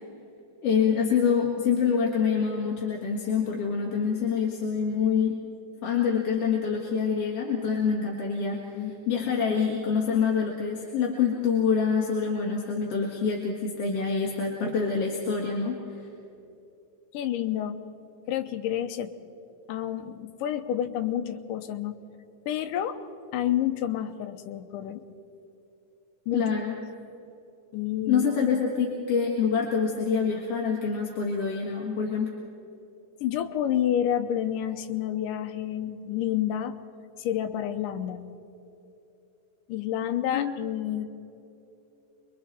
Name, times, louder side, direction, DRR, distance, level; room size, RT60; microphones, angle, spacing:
voice 1, 0.6-5.4 5.8-8.7 9.1-16.1 26.3-26.8 28.1-32.3 40.3-40.5, left 6 dB, 50° left, -2 dB, 2.5 m, -26 dB
voice 2, 17.1-17.8 18.3-19.2 19.7-22.0 22.5-23.0 23.3-25.0 26.3-26.5 27.7-28.2 33.2-36.8 37.2-38.3 39.7-41.0, left 11 dB, 75° left, 6 dB, 2.4 m, -29 dB
27.0 x 22.5 x 4.3 m, 2.9 s
omnidirectional pair, 4.0 m